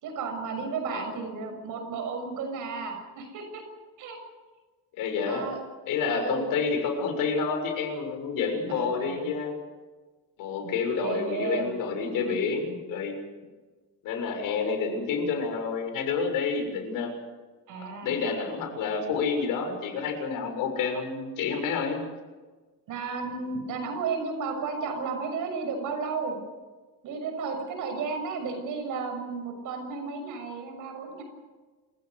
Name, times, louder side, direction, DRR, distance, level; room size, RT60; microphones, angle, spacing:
voice 1, 0.0-3.6 4.0-4.2 5.2-5.6 6.1-6.5 8.7-9.3 10.6-11.7 12.0-12.5 17.7-18.2 22.9-26.4 27.0-31.2, right 4 dB, 70° right, 5 dB, 6.7 m, -33 dB
voice 2, 5.0-5.5 5.9-9.5 10.4-13.2 14.0-17.1 18.0-22.1, left 5 dB, 85° left, 5 dB, 6.7 m, -29 dB
27.5 x 17.0 x 8.2 m, 1.3 s
cardioid pair, 155°, 33 cm